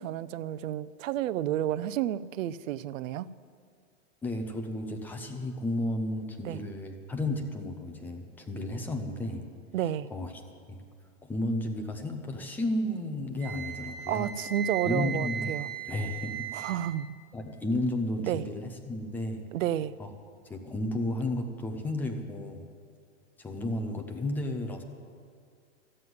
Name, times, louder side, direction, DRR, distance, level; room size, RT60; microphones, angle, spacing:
voice 1, 0.0-3.3 6.4-6.6 9.7-10.1 14.1-15.7 16.5-17.1 18.2-18.4 19.5-19.9, right 11 dB, 80° right, 17 dB, 0.6 m, -31 dB
voice 2, 4.2-9.5 10.1-10.3 10.7-10.8 11.2-14.3 14.8-15.5 15.9-16.7 17.3-19.4 20.0-20.1 20.4-22.7 23.4-24.8, left 1 dB, 5° left, 4 dB, 0.4 m, -33 dB
Wind instrument woodwind instrument, 13.4-16.9, right 8 dB, 50° right, 1.5 m, -37 dB
13.5 x 7.7 x 9.3 m, 2.1 s
supercardioid pair, 155°, 39 cm